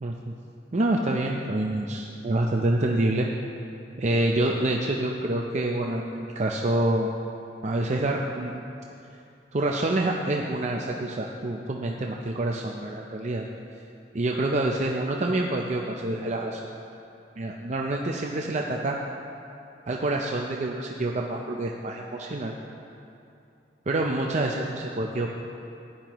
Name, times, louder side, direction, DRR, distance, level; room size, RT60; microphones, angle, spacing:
voice 1, 0.0-0.3 0.7-3.3 4.0-7.1 7.6-8.5 9.5-13.5 14.1-16.6 17.4-19.0 19.9-22.5 23.9-25.3, right 2 dB, 40° right, 0 dB, 0.6 m, -27 dB
15.5 x 10.5 x 3.0 m, 2.7 s
head